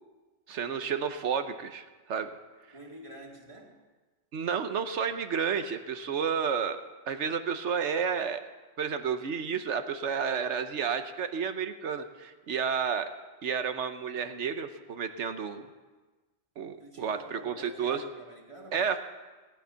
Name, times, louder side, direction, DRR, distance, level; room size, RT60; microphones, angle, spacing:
voice 1, 0.5-2.3 4.3-6.8 7.1-8.4 8.8-13.1 13.4-15.7 16.6-18.1 18.7-19.0, right 6 dB, 75° right, 9 dB, 1.2 m, -31 dB
voice 2, 2.7-3.8 16.8-19.0, right 1 dB, 25° right, -1 dB, 2.3 m, -48 dB
18.5 x 11.0 x 5.7 m, 1.3 s
omnidirectional pair, 1.2 m